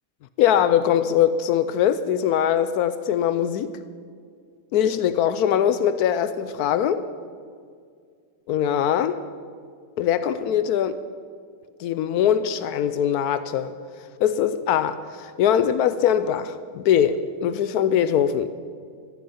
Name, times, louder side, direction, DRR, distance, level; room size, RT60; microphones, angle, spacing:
voice 1, 0.4-3.8 4.7-7.0 8.5-9.2 10.0-11.0 11.8-13.7 14.2-18.5, left 9 dB, 90° left, 12 dB, 0.8 m, -22 dB
15.5 x 12.5 x 5.8 m, 2.1 s
omnidirectional pair, 2.3 m